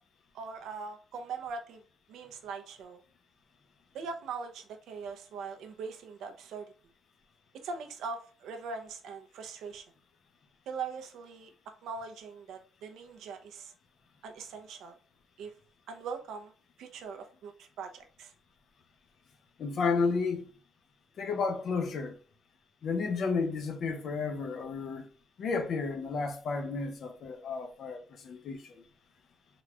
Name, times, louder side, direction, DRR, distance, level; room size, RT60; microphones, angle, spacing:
voice 1, 0.3-1.8 2.1-3.0 3.9-6.7 7.6-9.8 10.7-11.5 11.8-13.7 14.2-15.0 15.4-15.5 15.9-16.5 16.8-18.3, right 5 dB, 80° right, 0.7 m, -41 dB
voice 2, 19.6-20.5 21.2-22.2 22.8-25.1 25.4-28.7, left 4 dB, 55° left, 0.7 m, -32 dB
3.9 x 2.4 x 3.2 m
cardioid pair, 140°, 0 cm